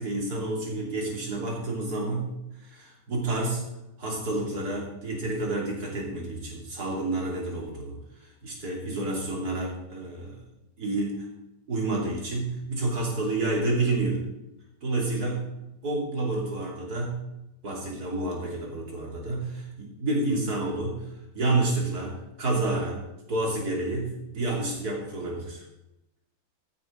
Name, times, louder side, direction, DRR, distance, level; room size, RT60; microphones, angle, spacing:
voice 1, 0.0-3.6 4.0-7.9 8.2-10.4 10.8-11.1 11.7-14.2 14.8-15.5 15.8-17.2 17.6-21.0 21.3-23.0 23.3-25.6, right 2 dB, 50° right, -2 dB, 3.3 m, -29 dB
15.0 x 9.1 x 3.9 m, 0.91 s
omnidirectional pair, 2.2 m